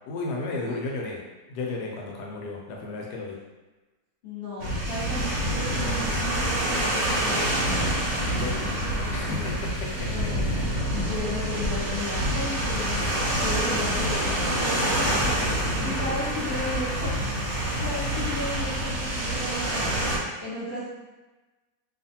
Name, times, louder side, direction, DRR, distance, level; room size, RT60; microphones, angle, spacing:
voice 1, 0.1-1.2 1.5-3.4 8.3-8.7 9.1-10.1 10.4-10.8, left 3 dB, 80° left, -1 dB, 1.2 m, -33 dB
voice 2, 4.2-8.0 8.3-9.4 10.0-17.3 17.8-19.9 20.4-20.9, left 2 dB, 40° left, -9 dB, 1.1 m, -35 dB
sound 1, 4.6-20.2, right 1 dB, 65° right, 0.9 m, -27 dB
2.7 x 2.4 x 2.7 m, 1.2 s
omnidirectional pair, 1.8 m